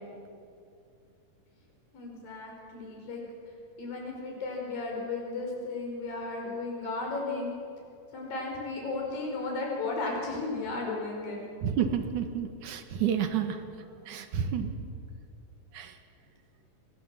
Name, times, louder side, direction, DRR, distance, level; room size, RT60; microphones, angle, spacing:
voice 1, 1.9-3.2 3.8-7.5 8.1-11.4, left 3 dB, 85° left, -1 dB, 6.6 m, -34 dB
voice 2, 11.6-13.7 14.1-14.7 15.7-15.9, right 8 dB, 65° right, 8 dB, 2.9 m, -30 dB
28.5 x 22.5 x 7.6 m, 2.5 s
omnidirectional pair, 3.9 m